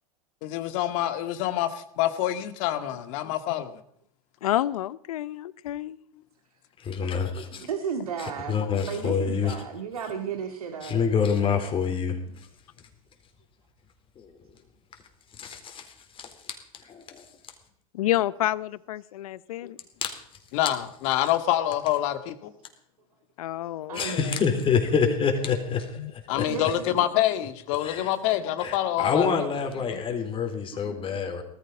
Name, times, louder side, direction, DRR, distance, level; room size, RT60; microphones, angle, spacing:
voice 1, 0.4-3.8 20.5-22.5 26.3-29.3 29.9-30.0 30.9-31.2, left 13 dB, 60° left, 10 dB, 2.0 m, -26 dB
voice 2, 4.4-6.0 17.9-19.8 23.4-24.4 26.0-26.1, left 14 dB, 80° left, 20 dB, 0.7 m, -29 dB
voice 3, 6.8-7.6 8.2-9.6 10.8-12.2 14.2-14.3 15.4-15.9 16.2-17.2 20.0-20.2 23.9-26.5 27.8-28.1 28.6-31.4, left 6 dB, 30° left, 5 dB, 4.0 m, -27 dB
voice 4, 7.6-11.1 23.9-24.2 26.5-27.1 27.9-28.0 30.1-30.2, right 7 dB, 90° right, 5 dB, 2.1 m, -34 dB
19.0 x 14.0 x 5.3 m, 0.67 s
hypercardioid pair, 105°, 18 cm